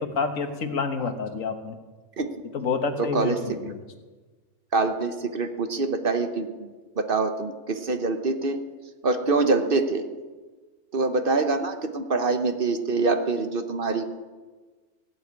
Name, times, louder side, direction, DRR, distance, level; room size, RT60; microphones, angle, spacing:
voice 1, 0.0-1.7 2.5-3.8, left 5 dB, 85° left, 7 dB, 1.6 m, -28 dB
voice 2, 3.0-3.4 3.6-3.7 4.7-6.7 7.0-8.6 9.0-10.0 10.9-14.1, right 3 dB, 45° right, 8 dB, 1.1 m, -25 dB
17.0 x 7.1 x 9.4 m, 1.3 s
omnidirectional pair, 1.3 m